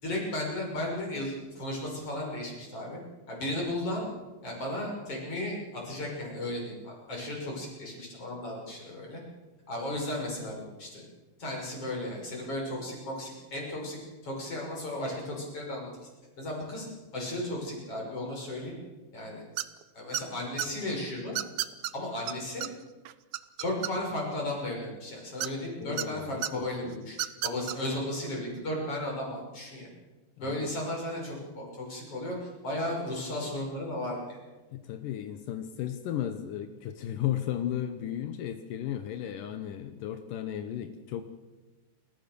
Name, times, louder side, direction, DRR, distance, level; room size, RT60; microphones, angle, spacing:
voice 1, 0.0-3.0 3.3-4.0 4.4-5.6 5.8-9.2 9.7-11.0 11.4-15.9 16.4-16.9 17.1-18.7 19.1-19.4 19.9-21.4 21.9-22.7 23.6-27.2 27.4-29.9 30.4-34.4, left 1 dB, 45° left, -1 dB, 7.2 m, -35 dB
sound 1, 19.6-19.8 20.1-20.7 21.3-21.9 22.3-22.4 22.6-22.7 23.0-24.2 25.4-26.1 26.4-26.5 27.1-27.7, right 14 dB, 75° right, 2.0 m, -31 dB
voice 2, 25.8-27.1 30.4-30.7 34.7-41.2, left 11 dB, 80° left, 8 dB, 2.7 m, -35 dB
28.5 x 14.5 x 6.9 m, 1.2 s
omnidirectional pair, 3.8 m